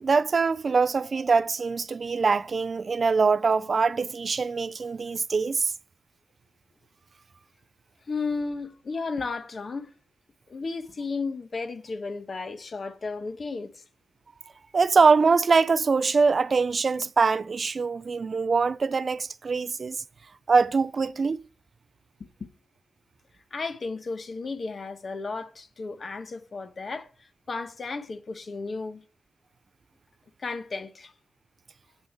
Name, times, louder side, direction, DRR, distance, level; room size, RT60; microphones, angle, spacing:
voice 1, 0.0-5.7 14.7-20.0 20.5-21.4, right 4 dB, 45° right, 0.4 m, -23 dB
voice 2, 8.1-9.9 10.5-13.8 22.2-22.5 23.5-29.0 30.4-31.1, left 4 dB, 45° left, 1.1 m, -34 dB
8.4 x 6.3 x 8.0 m
wide cardioid pair, 110°, 0 cm